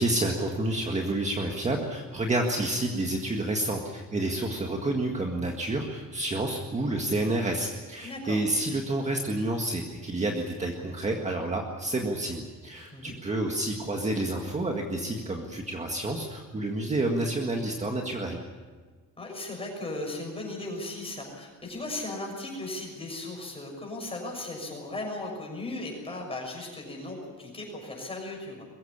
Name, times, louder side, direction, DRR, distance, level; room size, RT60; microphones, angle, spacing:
voice 1, 0.0-18.4, right 2 dB, 20° right, 1 dB, 1.8 m, -29 dB
voice 2, 8.0-8.4 12.9-13.1 19.2-28.7, left 2 dB, 15° left, 0 dB, 6.5 m, -37 dB
22.0 x 15.5 x 9.9 m, 1.4 s
cardioid pair, 160°, 33 cm